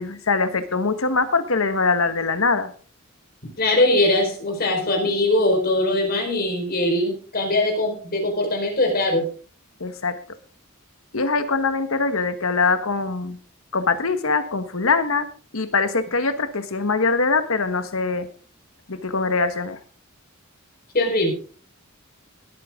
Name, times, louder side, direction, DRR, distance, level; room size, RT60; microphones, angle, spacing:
voice 1, 0.0-2.7 9.8-10.1 11.1-13.4 13.7-15.3 15.5-18.3 18.9-19.8, left 4 dB, 75° left, 10 dB, 1.4 m, -22 dB
voice 2, 3.4-9.3 20.9-21.3, left 1 dB, 45° left, 2 dB, 4.6 m, -21 dB
19.0 x 9.0 x 3.7 m, 0.39 s
head